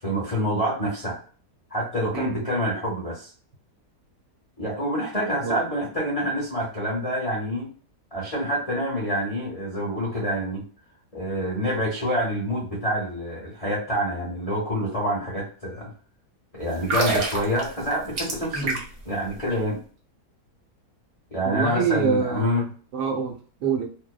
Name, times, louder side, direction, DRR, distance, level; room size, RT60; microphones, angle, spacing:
voice 1, 0.0-1.2 1.7-3.3 4.6-7.7 8.1-10.6 11.1-15.9 16.5-18.7 19.0-19.8 21.3-22.7, equal, 30° left, -5 dB, 0.7 m, -27 dB
sound 1, 16.7-19.1 19.4-19.6, right 3 dB, 60° right, 0.9 m, -27 dB
voice 2, 21.4-23.9, right 6 dB, 85° right, 3 dB, 1.2 m, -26 dB
2.7 x 2.1 x 2.3 m, 0.42 s
omnidirectional pair, 1.7 m